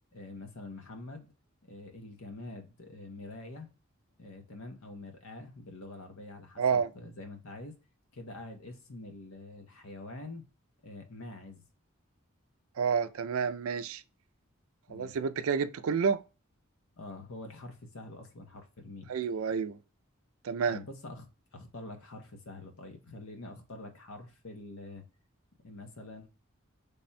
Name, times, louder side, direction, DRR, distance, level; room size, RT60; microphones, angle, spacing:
voice 1, 0.1-1.3 1.6-3.7 4.2-7.8 8.1-10.4 10.8-11.6 14.9-15.2 17.0-19.1 20.7-25.0 25.6-26.3, left 2 dB, 75° left, 0.8 m, -46 dB
voice 2, 6.6-6.9 12.8-14.0 14.9-16.2 19.1-19.8 20.4-20.8, right 6 dB, 75° right, 0.4 m, -29 dB
3.4 x 2.2 x 4.0 m
head